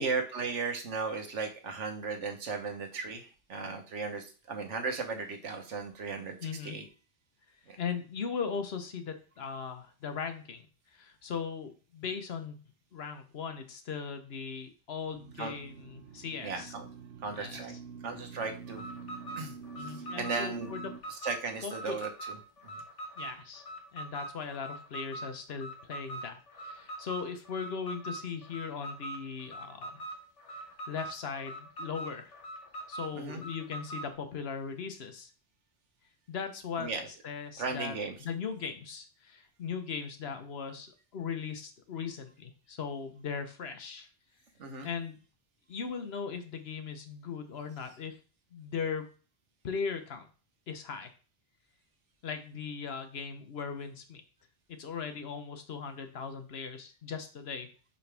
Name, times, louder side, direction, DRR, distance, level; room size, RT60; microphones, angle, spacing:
voice 1, 0.0-6.4 6.6-6.9 7.7-7.8 15.4-15.5 16.4-16.9 17.2-17.7 18.0-18.9 19.4-20.7 21.1-22.4 22.6-22.8 33.1-33.4 36.8-37.1 37.6-38.2 44.6-44.9, right 4 dB, 90° right, 5 dB, 1.4 m, -36 dB
voice 2, 6.4-6.9 7.8-10.7 10.9-12.6 12.9-16.7 17.3-17.6 19.7-20.8 21.6-22.0 23.2-23.7 23.9-30.0 30.9-32.4 32.9-35.3 36.3-36.9 37.2-44.1 44.8-45.2 45.7-48.2 48.5-49.1 49.6-50.2 50.7-51.1 52.2-54.2 54.7-57.7, left 6 dB, 65° left, 7 dB, 1.1 m, -38 dB
sound 1, 15.1-21.0, right 6 dB, 65° right, 0.8 m, -46 dB
Alarm, 18.7-34.1, right 2 dB, 80° left, 1.8 m, -43 dB
5.3 x 5.2 x 3.4 m, 0.36 s
omnidirectional pair, 1.2 m